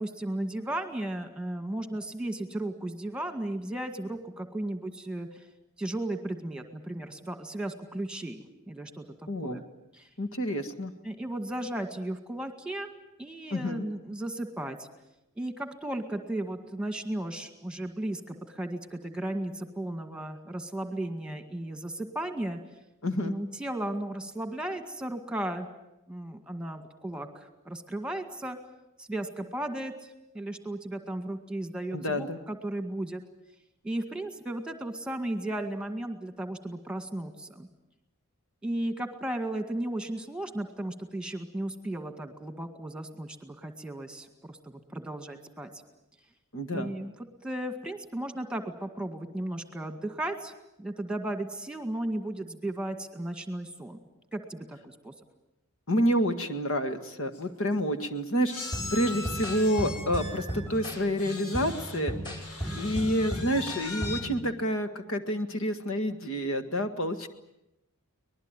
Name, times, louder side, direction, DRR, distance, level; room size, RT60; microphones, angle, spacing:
voice 1, 0.0-5.5 5.8-9.6 9.9-10.1 11.0-12.9 13.2-14.9 15.4-22.6 23.2-25.7 26.1-28.6 29.0-29.9 30.3-33.2 33.8-37.7 38.6-45.7 46.7-47.1 47.4-50.5 50.8-54.0 54.3-55.1, right 1 dB, 5° right, 7 dB, 1.9 m, -35 dB
voice 2, 9.3-9.6 10.2-10.9 13.5-13.8 23.0-23.3 31.9-32.4 46.5-46.9 55.9-62.1 62.7-67.3, equal, 60° left, 8 dB, 1.7 m, -29 dB
sound 1, 57.0-57.1 57.3-57.5 58.5-62.0 62.4-64.2, left 3 dB, 90° left, 3.8 m, -40 dB
sound 2, 58.7-64.4, equal, 20° left, 5.4 m, -36 dB
24.5 x 20.5 x 9.0 m, 0.87 s
head